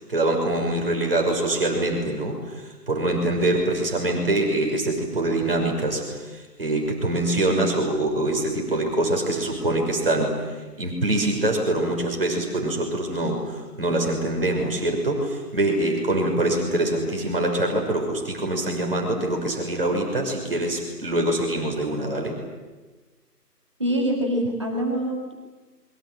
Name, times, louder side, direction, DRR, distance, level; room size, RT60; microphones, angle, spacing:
voice 1, 0.0-22.3, right 1 dB, 35° right, 1 dB, 5.8 m, -24 dB
voice 2, 23.8-25.3, right 1 dB, 20° right, -1 dB, 2.0 m, -25 dB
26.5 x 23.0 x 8.8 m, 1.2 s
figure-of-eight pair, 165°, 49 cm